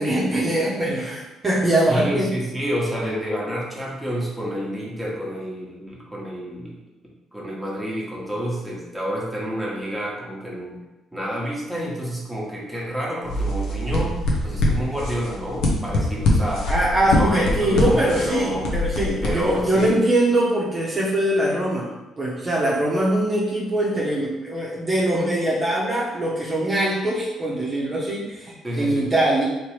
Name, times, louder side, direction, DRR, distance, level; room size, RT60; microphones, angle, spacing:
voice 1, 0.0-2.3 16.7-21.9 22.2-29.5, right 1 dB, 30° right, -6 dB, 1.0 m, -22 dB
voice 2, 1.9-6.7 7.3-10.8 11.1-14.2 14.4-16.7 17.0-18.7 19.2-20.0 28.6-29.1, equal, 5° right, -5 dB, 1.2 m, -29 dB
sound 1, 13.2-19.9, left 1 dB, 65° left, 0.7 m, -24 dB
3.3 x 2.9 x 3.2 m, 1.0 s
hypercardioid pair, 50°, 0 cm